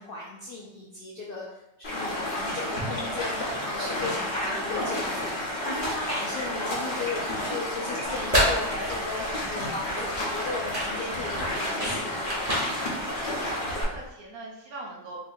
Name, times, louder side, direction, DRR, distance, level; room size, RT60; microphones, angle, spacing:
voice 1, 0.0-1.5 1.9-12.3, left 3 dB, 75° left, -4 dB, 0.5 m, -36 dB
Stream, 1.8-13.8, left 1 dB, 40° left, 0.9 m, -31 dB
sound 1, 8.0-14.1, equal, 30° right, 1.0 m, -31 dB
voice 2, 13.1-15.2, right 2 dB, 70° right, -2 dB, 1.2 m, -42 dB
4.0 x 2.7 x 2.6 m, 0.89 s
omnidirectional pair, 1.6 m